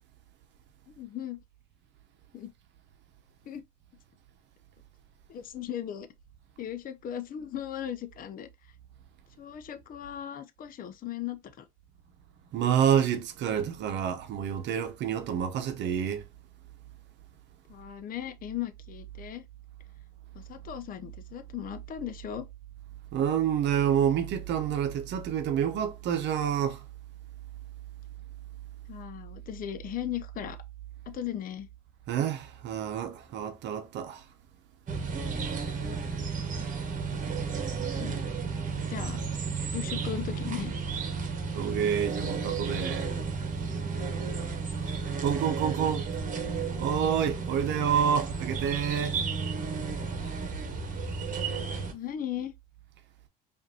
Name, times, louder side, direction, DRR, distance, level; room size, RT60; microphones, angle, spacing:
voice 1, 0.9-1.4 2.3-2.5 3.4-3.6 5.3-6.1 6.6-8.5 9.4-11.7 17.7-19.4 20.3-22.5 28.9-30.6 31.1-31.7 36.6-36.7 38.0-38.3 38.9-39.2 39.7-40.7 51.9-52.5, left 10 dB, 45° left, 0.6 m, -37 dB
voice 2, 12.5-16.2 23.1-26.8 32.1-34.2 41.5-43.1 45.2-46.1 46.8-49.2, right 8 dB, 65° right, 0.8 m, -28 dB
sound 1, 34.9-51.9, right 5 dB, 40° right, 1.1 m, -33 dB
5.0 x 2.6 x 2.7 m
supercardioid pair, 75°, 20 cm